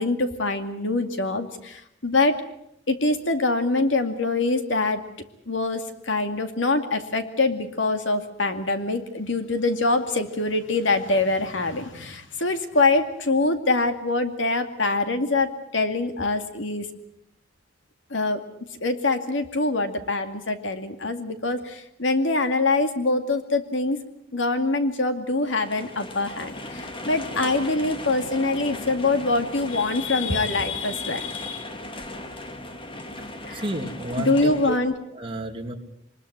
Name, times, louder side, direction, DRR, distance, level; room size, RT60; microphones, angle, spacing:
voice 1, 0.0-2.4 2.9-5.0 5.5-16.9 18.1-18.4 18.8-24.0 24.3-31.7 33.4-33.6 34.2-34.9, left 3 dB, 70° left, 7 dB, 2.3 m, -24 dB
sound 1, 25.4-34.8, left 1 dB, 30° left, 2.1 m, -37 dB
voice 2, 33.5-34.8 35.2-35.7, right 1 dB, 30° right, 2 dB, 2.8 m, -31 dB
24.0 x 21.0 x 8.0 m, 0.76 s
head